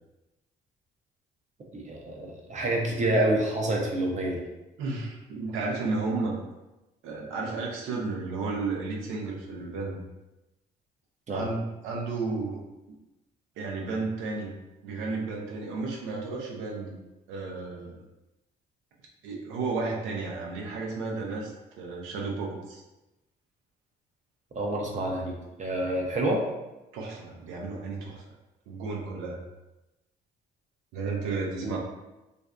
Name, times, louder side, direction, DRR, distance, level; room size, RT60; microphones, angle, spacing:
voice 1, 1.7-4.4 11.3-11.4 24.5-26.4 31.5-31.8, right 1 dB, 35° right, 0 dB, 0.6 m, -28 dB
voice 2, 4.8-6.4 7.0-10.0 11.3-13.0 13.6-14.5 14.8-17.0 17.3-18.0 19.2-21.5 21.8-22.8 26.9-28.2 28.7-29.4 30.9-31.8, right 3 dB, 80° right, -1 dB, 0.5 m, -33 dB
2.5 x 2.2 x 2.3 m, 1.0 s
supercardioid pair, 65°, 20 cm